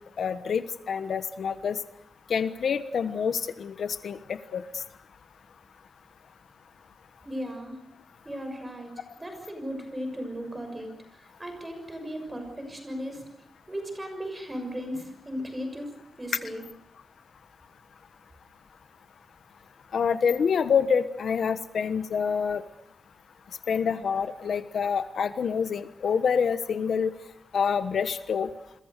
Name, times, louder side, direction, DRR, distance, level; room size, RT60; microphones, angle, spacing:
voice 1, 0.2-1.8 2.3-4.6 19.9-22.6 23.7-27.1 27.5-28.5, left 6 dB, 70° left, 11 dB, 1.2 m, -27 dB
voice 2, 7.2-7.8 8.2-13.3 13.7-15.9 16.2-16.6, equal, 15° right, 5 dB, 6.4 m, -36 dB
29.5 x 22.5 x 6.7 m, 0.78 s
wide cardioid pair, 170°, 0 cm